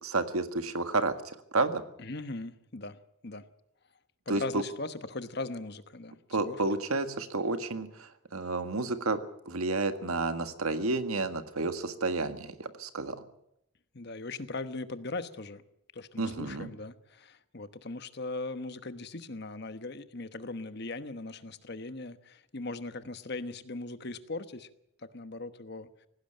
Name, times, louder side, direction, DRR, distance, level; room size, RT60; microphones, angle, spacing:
voice 1, 0.0-1.8 4.3-4.6 6.3-9.2 9.5-13.2 16.2-16.7, right 3 dB, 90° right, 9 dB, 1.7 m, -31 dB
voice 2, 2.0-3.0 3.2-3.5 4.3-6.6 13.9-15.6 15.9-24.7 25.0-25.9, left 2 dB, 50° left, 11 dB, 1.1 m, -39 dB
18.0 x 16.0 x 8.8 m, 0.78 s
head